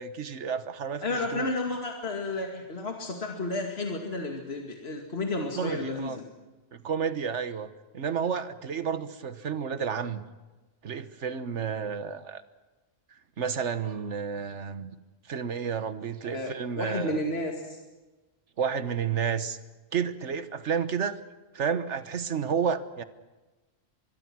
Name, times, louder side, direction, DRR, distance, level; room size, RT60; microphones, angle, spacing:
voice 1, 0.0-1.5 5.6-6.2 6.7-7.7 7.9-10.2 10.8-12.4 13.4-14.9 15.3-17.2 18.6-19.6 19.9-21.2 21.5-23.0, right 7 dB, 80° right, 12 dB, 1.5 m, -31 dB
voice 2, 1.0-6.2 16.2-17.8, left 2 dB, 60° left, 2 dB, 2.5 m, -32 dB
24.5 x 22.5 x 6.1 m, 1.2 s
omnidirectional pair, 1.2 m